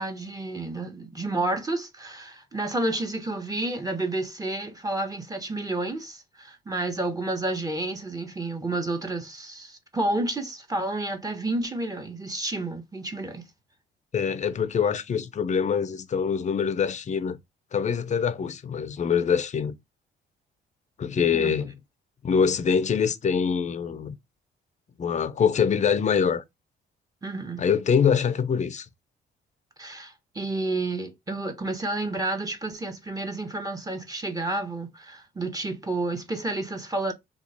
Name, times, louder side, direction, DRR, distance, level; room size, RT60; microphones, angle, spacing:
voice 1, 0.0-13.5 21.3-21.5 27.2-27.6 29.8-37.1, right 2 dB, 20° right, 0.8 m, -30 dB
voice 2, 14.1-17.4 17.7-19.7 21.0-21.8 22.2-24.1 25.0-26.4 27.6-28.9, left 6 dB, 35° left, 0.5 m, -24 dB
2.9 x 2.3 x 3.9 m
cardioid pair, 90°, 20 cm